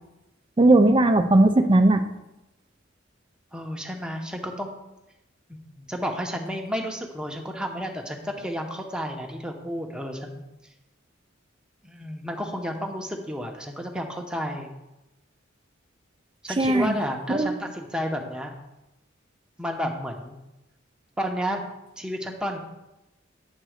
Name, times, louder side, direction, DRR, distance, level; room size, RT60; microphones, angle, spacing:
voice 1, 0.6-2.0 16.6-17.0 17.3-17.5, right 2 dB, 25° right, 8 dB, 0.5 m, -18 dB
voice 2, 3.5-4.7 5.5-10.4 11.8-14.7 16.4-18.5 19.6-20.4 21.2-21.6 22.0-22.6, equal, 5° right, 2 dB, 0.9 m, -31 dB
9.1 x 4.0 x 6.4 m, 0.97 s
head